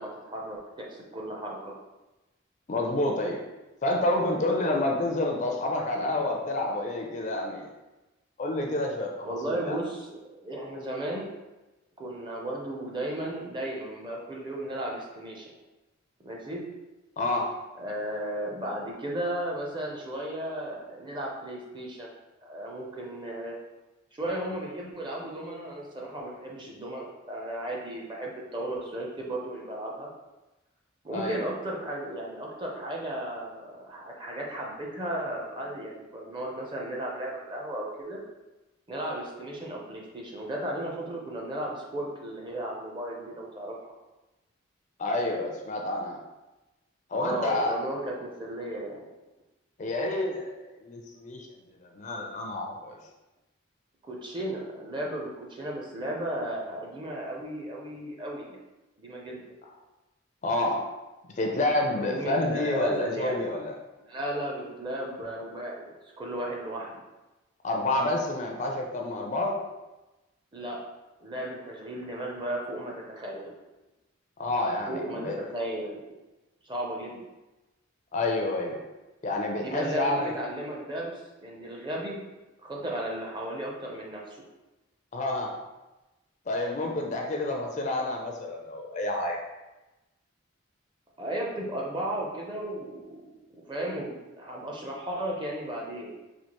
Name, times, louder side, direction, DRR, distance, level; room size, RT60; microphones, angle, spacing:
voice 1, 0.0-1.8 6.0-6.1 9.2-11.3 12.0-15.5 16.2-16.6 17.8-22.1 22.4-23.5 24.1-30.1 31.0-38.2 38.9-43.8 47.1-49.0 54.0-58.6 59.0-59.4 61.7-63.4 64.0-66.9 70.5-70.8 71.2-73.5 74.9-76.0 76.6-77.2 79.6-82.2 82.6-84.4 91.2-93.2 93.5-96.2, right 1 dB, 20° right, -2 dB, 0.5 m, -35 dB
voice 2, 2.7-3.4 3.8-7.7 8.4-9.8 17.2-17.5 31.1-31.4 45.0-46.2 47.1-47.7 49.8-51.5 51.8-53.0 60.4-60.9 61.4-63.7 67.6-69.7 74.4-75.4 78.1-78.8 79.2-80.3 85.1-85.6 86.5-89.4, left 2 dB, 35° left, 1 dB, 0.4 m, -29 dB
4.3 x 2.4 x 2.9 m, 1.1 s
head